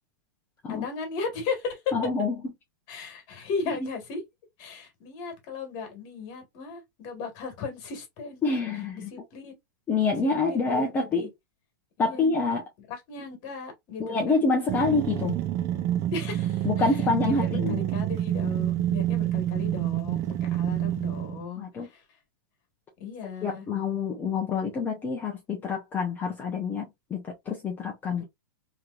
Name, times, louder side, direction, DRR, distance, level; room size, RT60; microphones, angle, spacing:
voice 1, 0.7-1.9 2.9-4.2 4.6-8.4 9.1-9.5 10.2-11.3 12.0-12.3 12.9-14.5 16.1-17.0 17.2-22.0 23.0-23.7 28.2-28.3, left 5 dB, 40° left, 1.7 m, -36 dB
voice 2, 1.9-2.3 3.7-3.9 8.4-9.1 9.9-11.3 12.0-12.6 14.0-15.4 16.6-17.8 21.6-21.9 23.4-28.2, left 4 dB, 15° left, 0.7 m, -27 dB
sound 1, 14.7-21.4, right 12 dB, 25° right, 0.4 m, -28 dB
3.2 x 2.9 x 2.4 m
hypercardioid pair, 145°, 11 cm